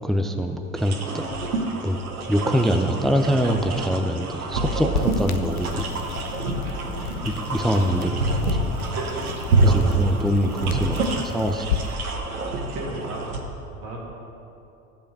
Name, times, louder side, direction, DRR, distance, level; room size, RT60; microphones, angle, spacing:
voice 1, 0.0-1.2 1.8-2.0 2.3-6.0 7.5-8.7 9.5-11.8, equal, ahead, 5 dB, 0.6 m, -24 dB
sound 1, 0.8-13.4, right 2 dB, 85° right, 1.1 m, -27 dB
sound 2, 4.9-12.0, left 7 dB, 85° left, 0.7 m, -33 dB
voice 2, 12.7-13.2 13.8-14.0, right 2 dB, 65° right, -3 dB, 2.7 m, -34 dB
14.0 x 5.1 x 6.8 m, 2.8 s
hypercardioid pair, 70°, 43 cm